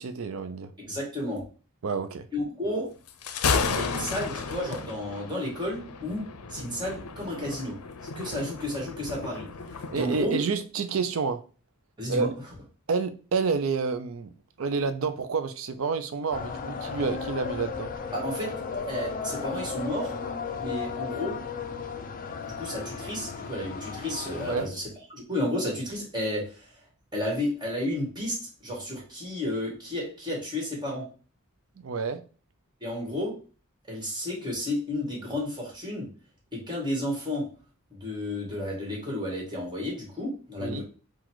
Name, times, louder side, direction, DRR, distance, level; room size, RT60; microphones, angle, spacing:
voice 1, 0.0-0.7 1.8-2.3 9.9-11.4 12.1-12.3 12.9-14.3 14.6-17.9 24.4-24.7 31.8-32.2 40.6-40.8, right 5 dB, 65° right, 0.5 m, -29 dB
voice 2, 0.8-1.4 2.3-2.9 3.7-6.2 6.5-7.8 8.2-9.5 9.9-10.4 12.0-12.3 18.1-18.5 18.9-20.1 20.6-21.4 22.4-24.8 25.1-26.7 27.1-28.4 28.6-31.1 32.8-33.3 33.9-36.1 36.5-37.5 37.9-40.8, left 1 dB, 20° right, 1.7 m, -32 dB
Thunder, 3.1-10.3, left 5 dB, 85° left, 0.5 m, -33 dB
sound 1, 16.3-24.6, left 5 dB, 40° left, 0.4 m, -35 dB
4.0 x 2.4 x 4.5 m
head